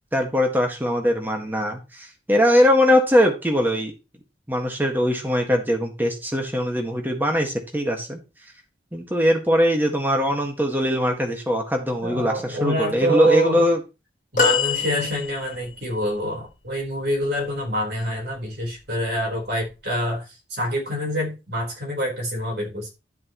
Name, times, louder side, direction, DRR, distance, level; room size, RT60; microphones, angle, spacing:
voice 1, 0.1-3.9 4.5-8.2 8.9-13.8, equal, 10° right, 1.8 m, -21 dB
voice 2, 12.0-13.7 14.3-20.2 20.5-22.9, right 1 dB, 65° right, 4.4 m, -26 dB
sound 1, 14.4-15.8 18.2-18.4 19.7-19.8, left 5 dB, 45° left, 1.7 m, -24 dB
11.5 x 7.5 x 3.1 m
head